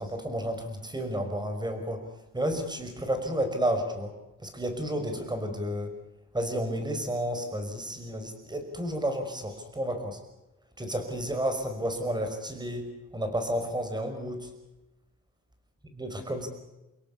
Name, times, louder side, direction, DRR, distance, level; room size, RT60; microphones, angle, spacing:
voice 1, 0.0-2.1 2.3-4.2 4.4-6.0 6.3-10.2 10.8-14.5 15.9-16.5, equal, 15° right, 7 dB, 5.7 m, -31 dB
29.5 x 17.5 x 8.6 m, 0.98 s
wide cardioid pair, 140°, 32 cm